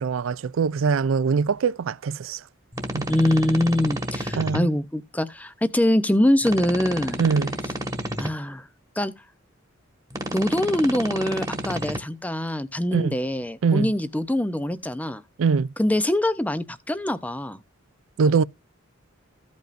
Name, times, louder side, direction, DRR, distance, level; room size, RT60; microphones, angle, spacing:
voice 1, 0.0-2.4 2.9-3.1 4.4-4.7 7.2-7.5 12.9-13.2 13.6-13.9 15.4-15.7 18.2-18.4, right 5 dB, 70° right, 0.4 m, -22 dB
sound 1, 2.7-4.6 6.4-8.3 10.1-12.0, right 1 dB, 15° right, 1.4 m, -30 dB
voice 2, 3.1-7.2 8.2-8.7 9.0-9.1 10.3-15.2 15.8-17.6, left 1 dB, 10° left, 0.6 m, -24 dB
15.5 x 5.3 x 2.5 m
head